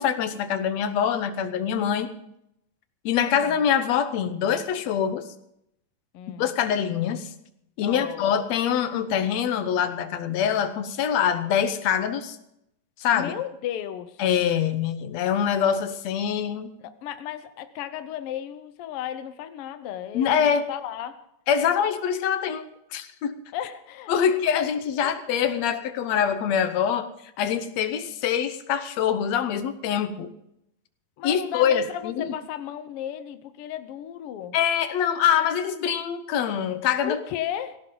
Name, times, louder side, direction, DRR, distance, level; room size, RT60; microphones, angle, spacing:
voice 1, 0.0-2.1 3.1-5.3 6.4-7.3 7.8-12.4 13.0-13.3 14.2-16.7 20.1-20.7 21.5-23.4 24.1-27.1 27.4-30.3 31.2-32.3 34.5-37.2, left 8 dB, 65° left, 10 dB, 1.9 m, -24 dB
voice 2, 3.2-3.6 6.1-6.6 7.8-8.4 13.1-14.2 16.8-21.3 23.5-24.1 24.5-24.7 25.0-25.1 31.2-34.5 37.0-37.8, left 10 dB, 90° left, 10 dB, 1.2 m, -35 dB
18.0 x 17.0 x 3.9 m, 0.79 s
omnidirectional pair, 3.8 m